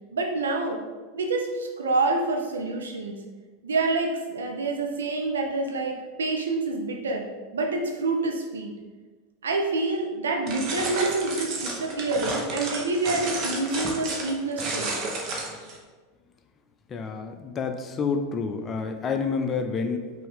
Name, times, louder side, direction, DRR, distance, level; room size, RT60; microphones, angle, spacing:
voice 1, 0.1-0.8 1.1-3.2 3.6-7.3 7.5-8.7 9.4-14.9, right 3 dB, 80° right, 2 dB, 0.7 m, -27 dB
sound 1, 10.5-15.8, right 3 dB, 45° right, 1.0 m, -31 dB
voice 2, 16.9-20.1, left 5 dB, 30° left, 6 dB, 0.5 m, -29 dB
5.4 x 2.7 x 3.6 m, 1.4 s
hypercardioid pair, 90°, 0 cm